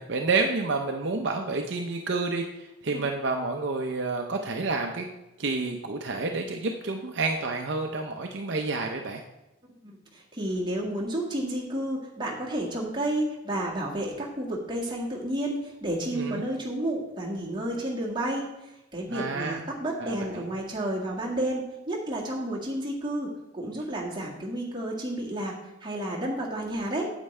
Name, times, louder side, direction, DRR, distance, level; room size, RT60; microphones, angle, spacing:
voice 1, 0.0-5.1 5.4-9.2 16.1-16.4 19.1-19.6 20.0-20.4, right 3 dB, 55° right, 3 dB, 0.6 m, -29 dB
voice 2, 9.8-25.5 25.8-27.1, right 1 dB, 20° right, -3 dB, 1.8 m, -31 dB
9.1 x 8.1 x 3.2 m, 0.97 s
head